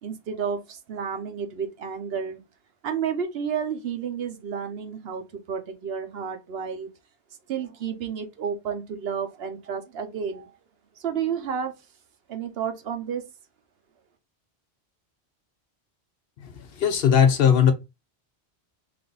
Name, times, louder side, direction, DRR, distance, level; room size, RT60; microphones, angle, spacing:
voice 1, 0.0-2.4 2.8-6.9 7.5-10.5 11.0-11.7 12.3-13.2, right 7 dB, 65° right, 0.9 m, -31 dB
voice 2, 16.4-17.7, left 8 dB, 65° left, 0.8 m, -19 dB
3.3 x 2.6 x 3.8 m
omnidirectional pair, 1.1 m